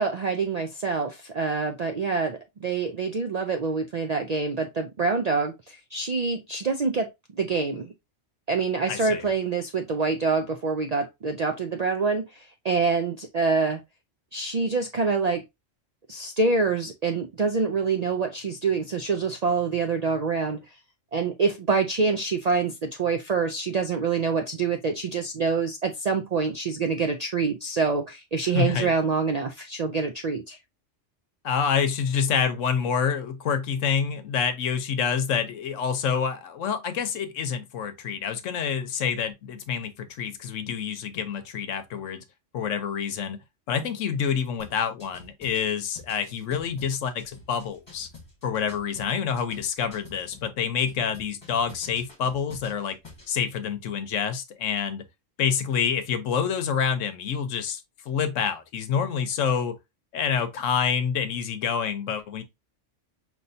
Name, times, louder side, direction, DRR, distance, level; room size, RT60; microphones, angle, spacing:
voice 1, 0.0-7.9 8.5-13.8 14.3-15.4 16.1-20.6 21.1-30.6, right 4 dB, 65° right, 0.4 m, -26 dB
voice 2, 8.9-9.2 28.5-28.9 31.4-42.2 42.5-43.4 43.7-48.1 48.4-53.0 53.3-55.0 55.4-59.8 60.1-62.4, left 7 dB, 85° left, 1.1 m, -27 dB
sound 1, 44.6-50.5 50.9-53.3, left 3 dB, 20° left, 1.6 m, -48 dB
5.3 x 3.0 x 2.6 m
omnidirectional pair, 1.3 m